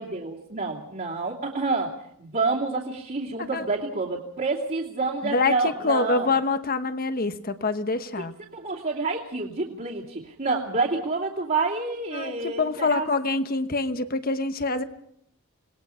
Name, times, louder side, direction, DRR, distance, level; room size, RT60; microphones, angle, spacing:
voice 1, 0.0-6.3 8.5-13.1, right 3 dB, 40° right, -4 dB, 2.7 m, -28 dB
voice 2, 5.2-8.3 12.1-14.8, left 3 dB, 45° left, 10 dB, 1.2 m, -26 dB
26.5 x 20.0 x 5.8 m, 0.72 s
head